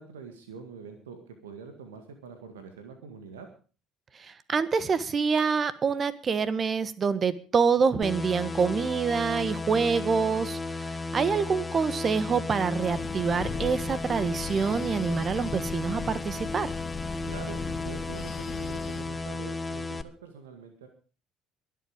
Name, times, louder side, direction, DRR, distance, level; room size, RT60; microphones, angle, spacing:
voice 1, 0.0-3.5 17.2-20.9, right 5 dB, 80° right, 6 dB, 1.9 m, -45 dB
voice 2, 4.2-16.7, right 5 dB, 35° right, 15 dB, 1.4 m, -26 dB
sound 1, 8.0-20.0, left 3 dB, 20° left, 1.2 m, -34 dB
Breathing, 12.6-19.3, left 5 dB, 40° left, 2.3 m, -40 dB
22.5 x 8.1 x 5.1 m, 0.38 s
hypercardioid pair, 60°, 0 cm